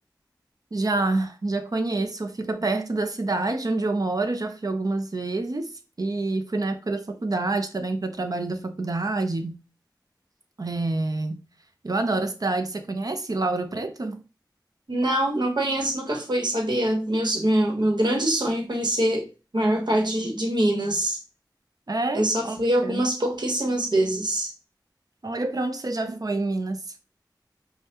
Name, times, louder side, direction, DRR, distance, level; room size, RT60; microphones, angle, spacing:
voice 1, 0.7-5.7 6.0-9.6 10.6-11.4 11.8-14.2 21.9-22.6 22.8-23.0 25.2-26.8, right 2 dB, 55° right, 0.6 m, -27 dB
voice 2, 14.9-19.3 19.5-21.2 22.1-24.5, right 1 dB, 70° right, 1.2 m, -24 dB
5.3 x 2.3 x 2.9 m
wide cardioid pair, 50°, 8 cm